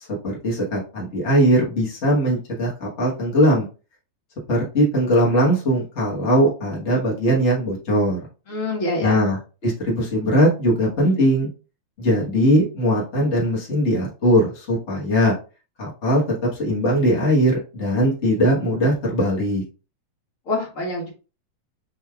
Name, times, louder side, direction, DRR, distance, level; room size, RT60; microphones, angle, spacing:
voice 1, 0.2-3.7 4.5-8.2 9.0-9.4 9.6-11.5 12.0-15.3 15.8-19.6, equal, 80° left, -4 dB, 0.6 m, -20 dB
voice 2, 8.5-9.2 20.5-21.1, left 2 dB, 50° left, -2 dB, 0.9 m, -26 dB
6.6 x 3.3 x 2.3 m, 0.34 s
omnidirectional pair, 3.4 m